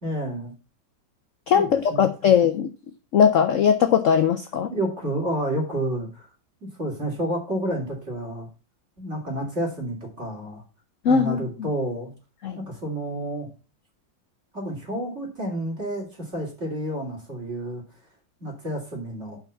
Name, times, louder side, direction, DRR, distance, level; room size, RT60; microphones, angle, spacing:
voice 1, 0.0-0.5 1.5-2.3 4.7-6.3 6.6-8.5 9.0-10.6 11.1-12.1 12.5-13.5 14.5-17.8 18.4-19.4, right 1 dB, 35° right, -1 dB, 3.5 m, -30 dB
voice 2, 1.5-2.7 3.1-4.7 11.0-11.4 12.4-12.6, left 7 dB, 65° left, 9 dB, 0.8 m, -19 dB
5.9 x 5.6 x 7.0 m, 0.33 s
omnidirectional pair, 2.0 m